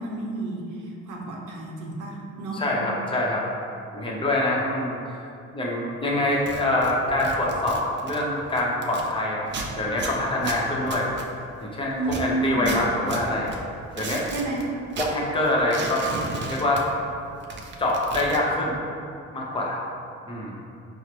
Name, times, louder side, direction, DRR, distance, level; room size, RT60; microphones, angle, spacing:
voice 1, 0.0-2.6 11.9-12.8 14.3-14.6, right 2 dB, 80° right, -1 dB, 0.7 m, -30 dB
voice 2, 2.6-3.4 3.9-5.0 5.5-9.5 9.8-11.1 11.6-13.5 14.0-14.3 15.0-16.0 16.5-16.9 17.8-18.8 19.3-19.8 20.3-20.5, left 1 dB, 15° left, -3 dB, 0.7 m, -25 dB
sound 1, 6.3-9.1 9.5-11.7 12.0-14.6 14.9-17.2 17.4-18.4, right 3 dB, 40° right, 0.4 m, -35 dB
4.8 x 2.0 x 2.9 m, 2.5 s
cardioid pair, 90°, 30 cm